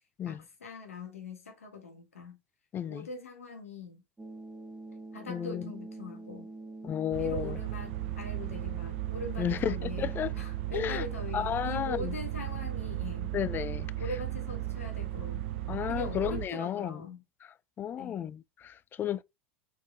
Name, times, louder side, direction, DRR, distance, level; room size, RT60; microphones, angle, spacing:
voice 1, 0.2-2.4 2.9-4.0 5.1-6.5 7.2-13.3 14.0-15.5 15.9-17.2 18.0-18.3, left 3 dB, 85° left, 1.6 m, -42 dB
voice 2, 2.7-3.1 5.3-5.6 6.8-7.6 9.4-10.3 10.7-11.0 11.3-12.1 13.3-13.9 15.7-17.0 17.8-19.2, left 10 dB, 30° left, 0.4 m, -33 dB
sound 1, 4.2-16.1, right 2 dB, 10° right, 1.6 m, -47 dB
sound 2, 7.1-16.5, right 16 dB, 65° right, 0.4 m, -36 dB
4.2 x 3.7 x 3.4 m
hypercardioid pair, 90°, 7 cm